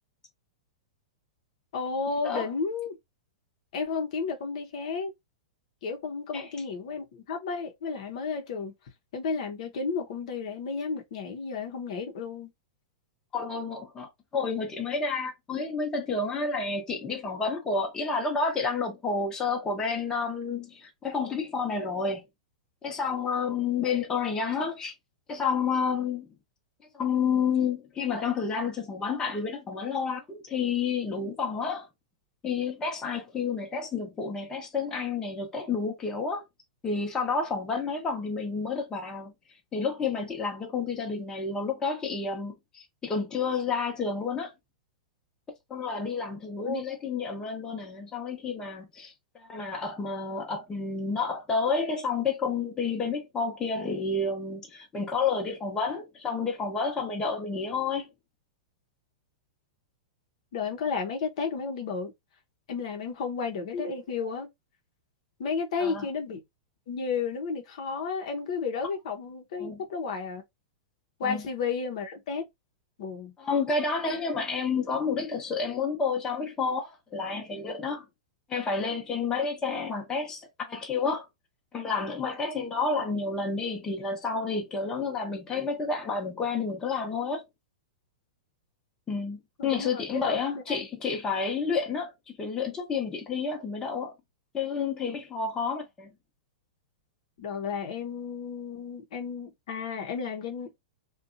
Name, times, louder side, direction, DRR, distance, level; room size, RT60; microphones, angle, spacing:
voice 1, 1.7-3.0 3.7-5.1 5.8-8.7 9.1-12.5 46.6-46.8 60.5-62.1 62.7-64.5 65.4-66.4 66.9-70.4 71.2-72.5 73.0-73.3 89.6-90.4 90.7-90.9 97.4-100.8, left 5 dB, 65° left, 0.7 m, -32 dB
voice 2, 13.3-22.2 22.8-24.9 25.3-26.3 26.9-31.9 32.4-36.4 36.8-39.3 39.7-44.5 45.7-58.1 65.8-66.1 69.6-69.8 71.2-71.4 73.4-78.0 78.5-81.3 81.7-87.4 89.1-94.1 94.5-96.1, left 4 dB, 20° left, 0.8 m, -30 dB
2.7 x 2.2 x 2.5 m
hypercardioid pair, 125°, 4 cm